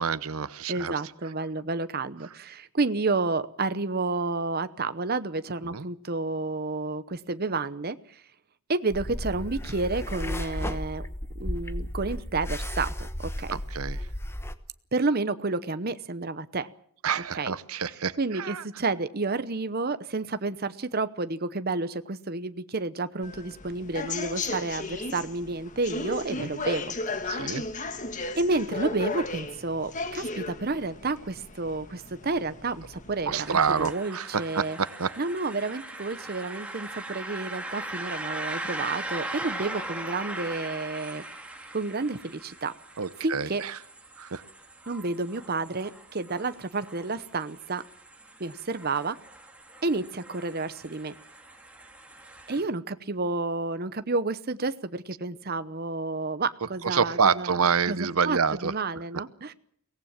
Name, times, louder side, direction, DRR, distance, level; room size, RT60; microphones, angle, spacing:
voice 1, 0.0-0.9 5.7-5.9 13.5-14.1 17.0-18.6 26.4-26.5 27.3-27.6 33.3-35.2 43.0-43.8 44.2-44.4 56.8-58.7, right 6 dB, 75° right, 15 dB, 0.9 m, -27 dB
voice 2, 0.7-8.2 8.7-11.1 11.4-13.1 13.4-13.6 14.9-16.7 17.4-17.5 18.2-26.9 27.2-27.5 28.4-34.8 35.2-41.2 41.7-42.7 43.2-43.6 44.9-47.8 48.4-49.2 49.8-51.1 52.5-57.6 57.9-58.0 58.2-59.5, right 3 dB, 45° right, 12 dB, 0.9 m, -30 dB
sound 1, 8.9-14.5, left 1 dB, 10° left, 1.1 m, -34 dB
sound 2, 23.2-33.9, left 3 dB, 35° left, 1.5 m, -35 dB
sound 3, 33.3-52.6, right 2 dB, 5° right, 2.7 m, -40 dB
23.5 x 18.0 x 7.3 m, 0.63 s
head